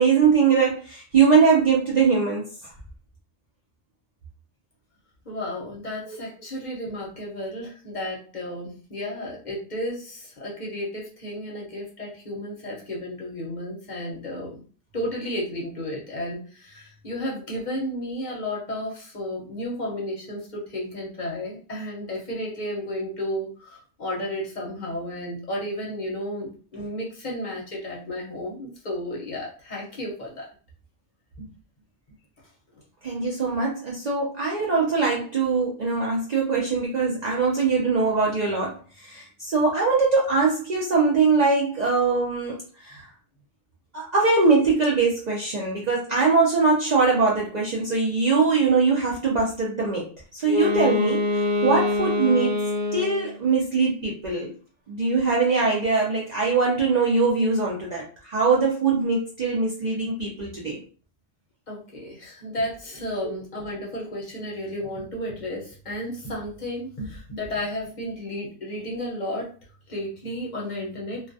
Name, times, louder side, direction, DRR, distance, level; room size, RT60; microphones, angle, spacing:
voice 1, 0.0-2.7 6.1-6.2 33.0-43.1 43.9-52.5 52.9-54.5 54.9-60.8 63.2-63.3, right 4 dB, 55° right, -4 dB, 0.5 m, -22 dB
voice 2, 5.3-14.5 14.9-30.5 31.4-31.5 61.7-69.5 69.9-71.2, left 1 dB, 45° left, -2 dB, 0.7 m, -33 dB
Wind instrument woodwind instrument, 50.4-53.3, left 2 dB, 10° right, 0.8 m, -24 dB
2.3 x 2.1 x 2.5 m, 0.40 s
omnidirectional pair, 1.2 m